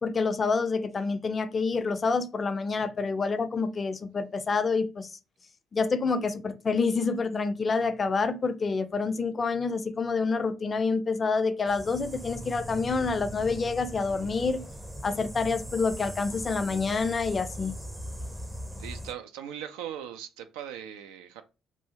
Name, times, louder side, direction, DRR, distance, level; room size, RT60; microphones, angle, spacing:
voice 1, 0.0-5.2 5.7-14.6 15.0-17.7, left 4 dB, 40° left, 0.4 m, -27 dB
sound 1, 11.7-19.1, equal, 10° right, 0.5 m, -40 dB
voice 2, 18.8-21.4, right 10 dB, 80° right, 0.3 m, -39 dB
2.7 x 2.3 x 2.7 m
hypercardioid pair, 55°, 0 cm